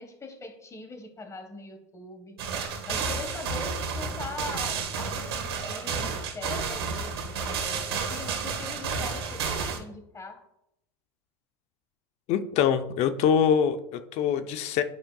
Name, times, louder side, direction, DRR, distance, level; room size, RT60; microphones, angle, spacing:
voice 1, 0.0-2.4 2.9-7.1 7.5-10.4, left 3 dB, 20° left, 5 dB, 1.5 m, -41 dB
sound 1, 2.4-9.8, right 5 dB, 75° right, 1.6 m, -31 dB
voice 2, 12.3-14.8, left 8 dB, 55° left, 10 dB, 0.7 m, -24 dB
10.5 x 5.0 x 2.3 m, 0.80 s
hypercardioid pair, 95°, 13 cm